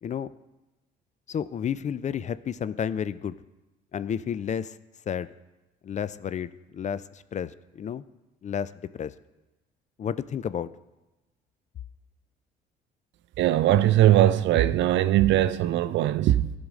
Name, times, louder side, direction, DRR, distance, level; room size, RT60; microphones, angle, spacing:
voice 1, 1.3-3.4 3.9-4.8 5.1-5.3 5.8-8.0 8.4-8.7 9.0-9.1 10.0-10.7, left 8 dB, 35° left, 0.4 m, -31 dB
voice 2, 13.4-16.5, right 13 dB, 60° right, 0.5 m, -20 dB
13.0 x 5.4 x 3.7 m
hypercardioid pair, 65°, 21 cm